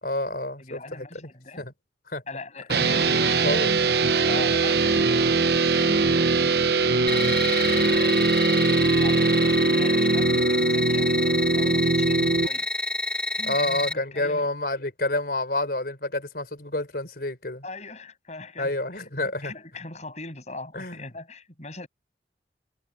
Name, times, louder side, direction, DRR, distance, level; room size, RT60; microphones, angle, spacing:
voice 1, 0.0-1.3 1.6-1.7 2.1-2.2 2.7-3.0 3.4-3.7 13.4-17.6 18.6-19.5 20.7-21.0, left 2 dB, 55° left, 4.4 m, -29 dB
voice 2, 0.6-1.7 2.3-3.7 4.2-6.0 7.0-8.3 8.7-9.3 9.6-12.7 13.3-14.5 17.6-21.9, left 3 dB, 40° left, 7.9 m, -40 dB
sound 1, 2.7-12.5, right 3 dB, 60° right, 0.9 m, -21 dB
sound 2, 7.1-13.9, left 2 dB, 5° left, 1.5 m, -29 dB
head